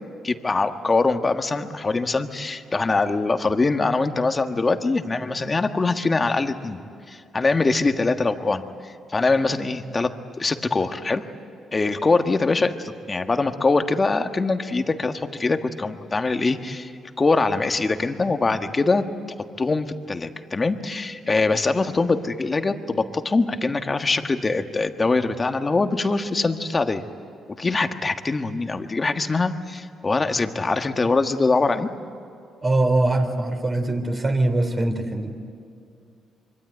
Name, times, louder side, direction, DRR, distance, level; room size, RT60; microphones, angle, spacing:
voice 1, 0.2-6.8 7.1-10.1 10.4-11.2 11.7-16.9 17.2-19.0 19.6-27.0 27.6-31.9, left 3 dB, 25° left, 7 dB, 1.5 m, -23 dB
voice 2, 32.6-35.3, right 2 dB, 30° right, 5 dB, 3.5 m, -22 dB
26.0 x 24.0 x 9.2 m, 2.4 s
cardioid pair, 90°, 0 cm